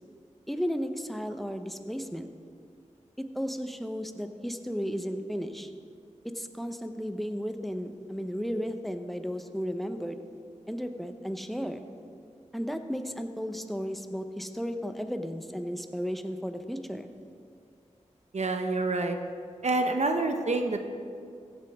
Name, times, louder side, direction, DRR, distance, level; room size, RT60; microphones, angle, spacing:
voice 1, 0.5-2.3 3.2-5.7 6.2-10.2 10.7-11.9 12.5-17.1, equal, ahead, 7 dB, 0.9 m, -34 dB
voice 2, 18.3-19.2 19.6-20.9, right 2 dB, 65° right, 5 dB, 0.9 m, -27 dB
15.5 x 7.9 x 3.7 m, 2.3 s
cardioid pair, 40°, 13 cm